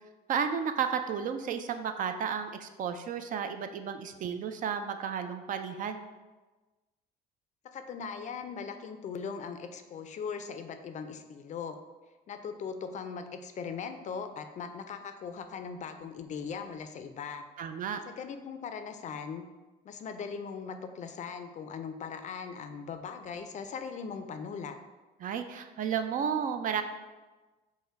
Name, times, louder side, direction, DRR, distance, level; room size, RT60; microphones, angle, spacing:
voice 1, 0.3-6.1 17.6-18.0 25.2-26.8, right 7 dB, 50° right, 8 dB, 0.4 m, -32 dB
voice 2, 7.7-11.8 12.3-17.5 18.1-19.4 19.8-24.8, left 6 dB, 45° left, 8 dB, 0.4 m, -39 dB
5.5 x 2.1 x 4.5 m, 1.2 s
cardioid pair, 110°, 17 cm